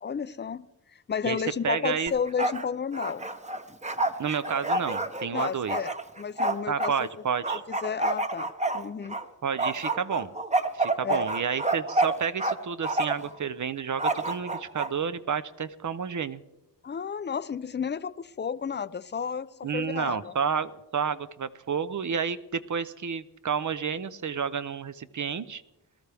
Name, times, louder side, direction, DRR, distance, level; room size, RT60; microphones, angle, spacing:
voice 1, 0.0-3.3 5.3-6.9 7.7-8.5 8.7-9.2 11.0-11.3 16.8-20.3, left 6 dB, 25° left, 16 dB, 0.5 m, -32 dB
voice 2, 1.2-2.1 4.2-5.8 6.7-7.6 9.4-10.3 10.7-16.4 19.6-25.6, right 6 dB, 45° right, 14 dB, 0.7 m, -30 dB
Bark, 2.1-2.6 2.9-6.9 7.4-9.2 9.6-12.5 12.8-13.3 14.0-14.9, right 2 dB, 15° right, 1.0 m, -28 dB
19.5 x 13.0 x 3.5 m, 0.96 s
cardioid pair, 55°, 43 cm